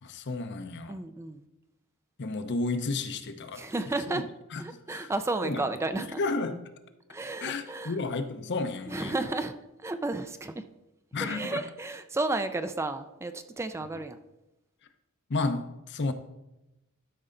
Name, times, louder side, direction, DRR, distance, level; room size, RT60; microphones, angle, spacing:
voice 1, 0.0-1.0 2.2-3.7 4.1-4.2 4.5-4.6 4.9-5.1 5.4-5.6 6.2-6.6 7.4-9.1 11.1-11.6 15.3-16.1, left 3 dB, 55° left, 0.7 m, -32 dB
voice 2, 0.9-1.4 3.5-4.3 4.6-6.2 7.1-8.0 8.9-10.6 11.2-14.2, right 2 dB, 15° right, 0.3 m, -32 dB
12.0 x 5.4 x 3.8 m
head